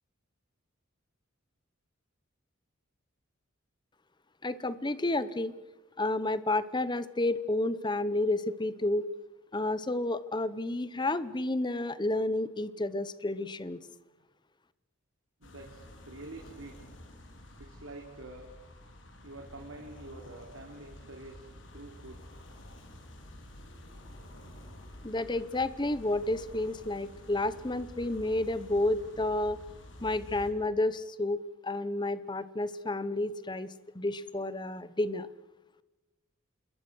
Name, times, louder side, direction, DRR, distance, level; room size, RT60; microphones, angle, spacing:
voice 1, 4.4-5.5 6.0-9.0 9.5-13.8 25.0-29.6 30.0-35.3, left 2 dB, 20° left, 15 dB, 0.9 m, -31 dB
sound 1, 15.4-30.5, left 1 dB, 65° left, 4.0 m, -50 dB
voice 2, 15.4-16.7 17.6-18.4 19.2-22.3, right 2 dB, 85° right, 1 dB, 3.2 m, -47 dB
27.5 x 21.5 x 6.3 m, 1.1 s
head